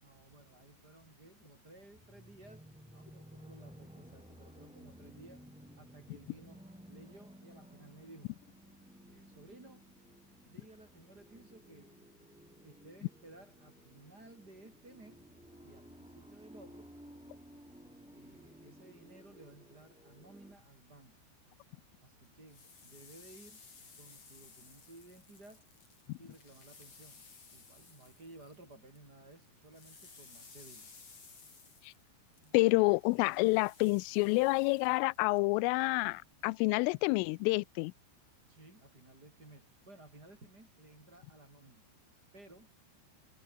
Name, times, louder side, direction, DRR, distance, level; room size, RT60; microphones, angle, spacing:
voice 1, 0.0-5.4 5.8-8.4 9.0-9.9 10.4-12.0 12.6-15.2 15.6-16.9 18.1-21.1 22.0-23.6 24.0-25.7 26.2-30.9 32.4-32.6 38.4-41.8 42.3-42.7, right 2 dB, 20° right, 4.8 m, -57 dB
sound 1, 1.9-20.6, equal, 5° right, 0.7 m, -56 dB
sound 2, 22.2-29.1 29.3-35.4, left 4 dB, 35° left, 5.7 m, -58 dB
voice 2, 32.5-37.9, left 25 dB, 90° left, 3.2 m, -28 dB
omnidirectional pair, 5.7 m